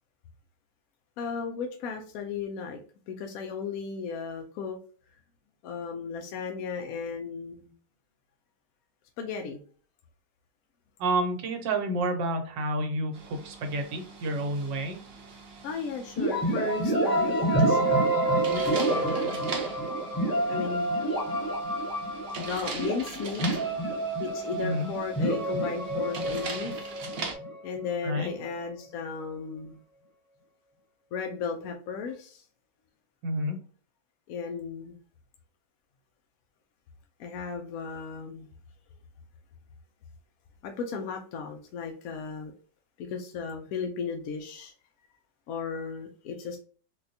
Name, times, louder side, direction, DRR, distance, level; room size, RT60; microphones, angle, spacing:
voice 1, 1.2-2.8 3.1-4.8 5.6-7.7 9.2-9.6 15.6-19.5 20.5-20.9 22.4-23.4 24.2-26.7 27.6-29.8 31.1-32.4 34.3-35.0 37.2-38.5 40.6-42.5 43.0-44.7 45.5-46.6, left 5 dB, 70° left, 3 dB, 0.8 m, -35 dB
voice 2, 11.0-15.0 24.6-24.9 28.0-28.3 33.2-33.6, right 1 dB, 85° right, 5 dB, 1.4 m, -29 dB
sound 1, 13.1-27.4, right 3 dB, 55° right, 0.7 m, -41 dB
sound 2, 16.2-27.9, right 1 dB, 20° left, 0.5 m, -28 dB
4.1 x 2.3 x 2.6 m, 0.42 s
omnidirectional pair, 1.9 m